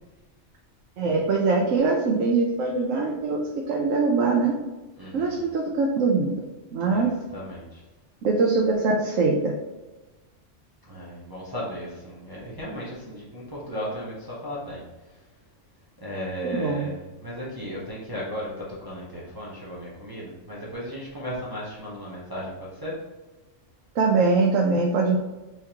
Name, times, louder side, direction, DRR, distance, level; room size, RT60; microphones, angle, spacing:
voice 1, 1.0-4.5 5.1-6.4 6.7-7.2 8.2-9.5 16.4-16.9 24.0-25.2, right 4 dB, 85° right, -1 dB, 1.0 m, -22 dB
voice 2, 5.0-5.4 6.8-7.8 10.9-14.8 16.0-18.5 18.8-23.0, equal, 20° right, -7 dB, 0.9 m, -35 dB
4.5 x 3.5 x 2.9 m, 1.1 s
omnidirectional pair, 1.3 m